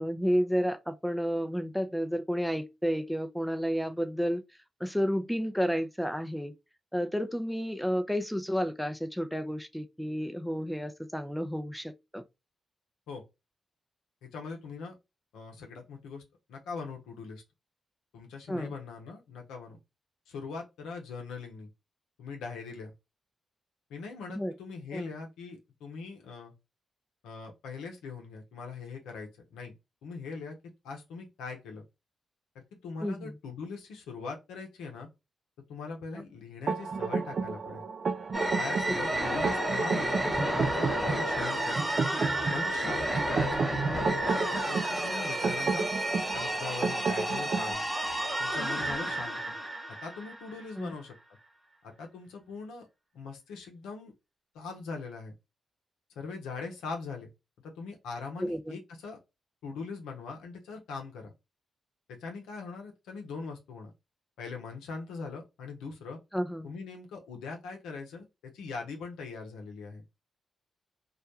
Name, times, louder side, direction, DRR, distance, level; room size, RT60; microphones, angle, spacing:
voice 1, 0.0-4.4 4.8-6.5 6.9-12.2 18.5-18.7 24.3-24.5 24.9-25.1 33.0-33.3 50.8-50.9 58.4-58.8 66.3-66.7, equal, ahead, 0.5 m, -31 dB
voice 2, 14.2-14.9 15.3-16.2 16.5-17.4 18.1-19.8 20.3-21.7 22.2-22.9 23.9-26.5 27.2-29.7 30.0-30.6 30.8-31.8 32.5-35.1 35.7-37.8 38.6-41.9 42.5-44.1 44.7-45.9 46.3-47.8 48.4-49.6 50.0-51.1 51.8-52.9 53.1-54.1 54.5-55.3 56.2-57.3 57.6-59.2 59.6-61.3 62.1-63.9 64.4-66.2 66.6-70.0, left 4 dB, 90° left, 0.6 m, -41 dB
sound 1, 36.7-47.7, right 4 dB, 60° right, 0.3 m, -32 dB
sound 2, 38.3-50.8, right 1 dB, 20° right, 0.9 m, -31 dB
2.3 x 2.1 x 2.7 m
supercardioid pair, 45°, 0 cm